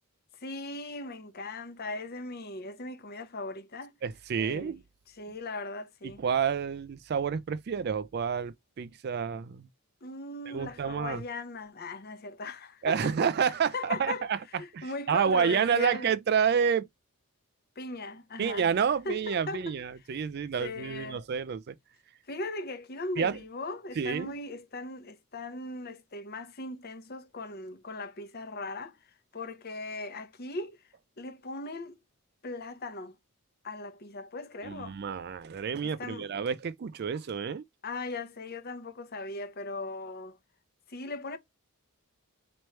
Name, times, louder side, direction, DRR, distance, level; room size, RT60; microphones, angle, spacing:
voice 1, 0.3-4.0 4.4-4.8 5.1-6.2 10.0-13.1 13.7-14.3 14.5-16.1 17.8-18.7 19.0-19.8 20.6-21.2 22.3-30.8 31.2-32.0 32.4-33.2 33.6-35.0 35.8-36.3 37.8-40.4 40.9-41.4, left 2 dB, 45° left, 0.8 m, -39 dB
voice 2, 4.0-4.8 6.0-9.7 10.5-11.2 12.8-14.4 14.7-16.9 18.4-21.7 23.2-23.4 24.0-24.3 34.6-37.6, right 7 dB, 45° right, 0.3 m, -29 dB
3.1 x 3.1 x 4.3 m
head